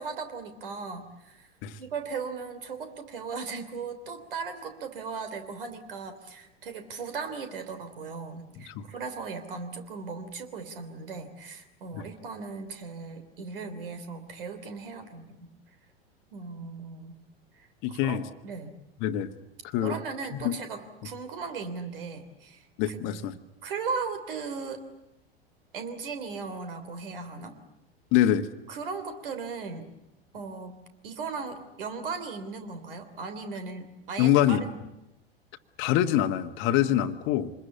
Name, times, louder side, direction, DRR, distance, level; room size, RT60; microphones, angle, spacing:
voice 1, 0.0-1.5 1.8-15.4 16.3-17.1 17.5-18.2 18.4-18.7 19.8-23.2 23.6-24.8 25.7-27.5 28.7-29.9 30.3-34.8, right 4 dB, 60° right, 9 dB, 3.4 m, -37 dB
voice 2, 17.8-18.2 19.0-19.3 19.6-19.9 20.4-20.6 22.8-23.3 28.1-28.5 34.2-34.6 35.8-37.5, left 11 dB, 40° left, 9 dB, 1.4 m, -24 dB
26.5 x 21.0 x 8.5 m, 0.93 s
figure-of-eight pair, 85°, 30 cm